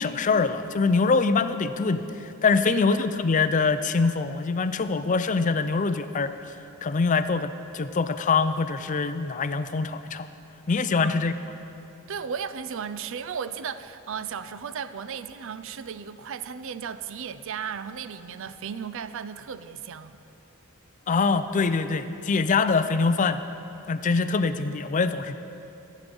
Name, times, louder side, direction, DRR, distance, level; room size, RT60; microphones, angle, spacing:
voice 1, 0.0-6.3 6.8-10.3 10.7-11.3 21.1-23.4 23.9-25.4, left 4 dB, 35° left, 11 dB, 0.4 m, -24 dB
voice 2, 2.6-3.0 11.0-11.3 12.1-20.2, right 7 dB, 60° right, 13 dB, 0.4 m, -35 dB
15.0 x 8.4 x 5.3 m, 2.9 s
head